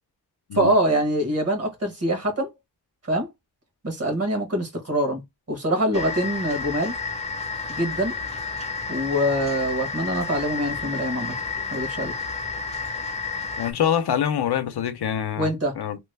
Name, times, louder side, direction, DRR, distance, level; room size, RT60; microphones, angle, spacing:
voice 1, 0.5-2.5 3.0-3.3 3.8-5.2 5.5-6.9 7.7-8.1 8.9-11.3 11.7-12.1 15.4-15.7, right 1 dB, 40° right, 1.4 m, -24 dB
sound 1, 5.9-13.7, left 5 dB, 15° left, 0.6 m, -31 dB
voice 2, 13.6-15.5 15.8-16.0, left 9 dB, 80° left, 0.6 m, -25 dB
3.0 x 2.2 x 3.3 m
wide cardioid pair, 130°, 39 cm